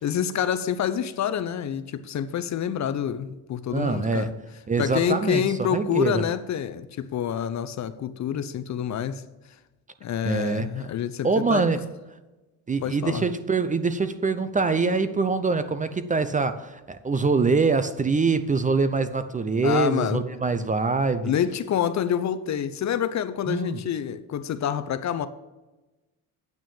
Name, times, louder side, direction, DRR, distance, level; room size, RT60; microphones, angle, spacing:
voice 1, 0.0-4.3 4.8-9.2 10.0-11.6 12.8-13.3 19.6-20.2 21.2-25.3, left 9 dB, 45° left, 0.7 m, -27 dB
voice 2, 3.7-4.3 4.7-5.4 5.7-6.2 10.3-10.9 11.2-11.8 12.7-21.3 23.5-23.8, right 4 dB, 20° right, 0.6 m, -24 dB
9.0 x 6.2 x 7.1 m
cardioid pair, 100°, 40 cm